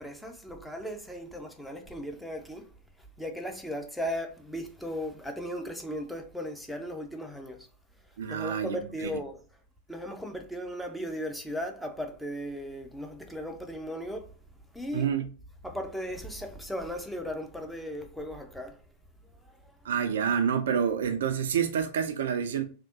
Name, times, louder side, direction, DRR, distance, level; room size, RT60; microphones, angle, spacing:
voice 1, 0.0-2.7 3.2-7.7 8.3-9.4 9.9-14.3 14.7-15.1 15.6-18.8 19.5-19.9, equal, ahead, 0.6 m, -37 dB
voice 2, 8.2-8.8 14.9-15.3 19.8-22.6, right 7 dB, 60° right, 0.4 m, -28 dB
3.4 x 2.7 x 2.6 m
figure-of-eight pair, 90°, 0 cm